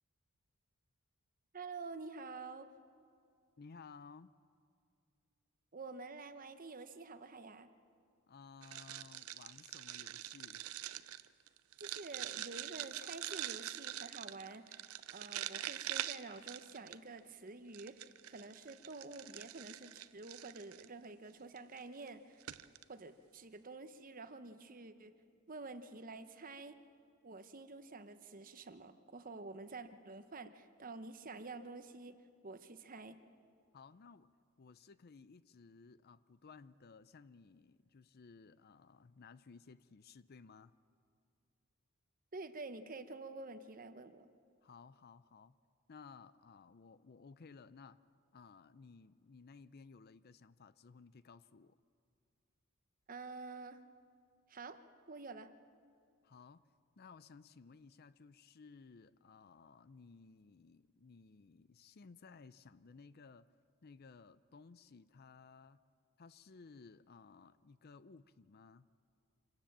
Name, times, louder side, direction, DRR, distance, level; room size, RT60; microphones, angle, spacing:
voice 1, 1.5-2.7 5.7-7.7 11.8-22.4 22.9-25.1 25.5-26.8 27.2-32.2 32.4-33.2 42.3-44.3 53.1-53.8 54.5-54.8 55.1-55.5, right 3 dB, 40° right, 10 dB, 0.9 m, -49 dB
voice 2, 3.6-4.3 8.3-10.7 33.7-34.3 34.6-40.7 44.6-45.6 45.9-48.0 48.3-51.8 56.2-56.7 57.0-63.5 63.8-65.8 66.2-68.9, left 4 dB, 45° left, 16 dB, 0.5 m, -58 dB
sound 1, 8.6-17.2 17.7-20.9 21.6-21.8 22.1-22.2 22.4-22.8, right 12 dB, 75° right, 0.6 m, -44 dB
26.0 x 17.5 x 7.4 m, 2.3 s
head